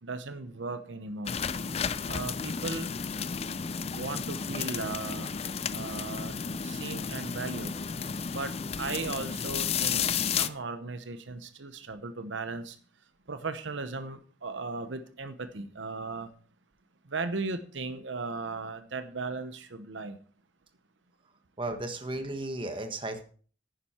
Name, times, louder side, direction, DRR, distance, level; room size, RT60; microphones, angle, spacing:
voice 1, 0.0-1.4 2.1-2.9 3.9-5.3 5.7-6.4 6.6-7.8 8.3-12.8 13.3-16.3 17.0-20.2, right 3 dB, 70° right, 0.9 m, -37 dB
sound 1, 1.3-10.5, left 6 dB, 30° left, 0.4 m, -32 dB
voice 2, 21.6-23.2, right 2 dB, 25° right, 1.3 m, -34 dB
10.5 x 9.9 x 4.4 m
head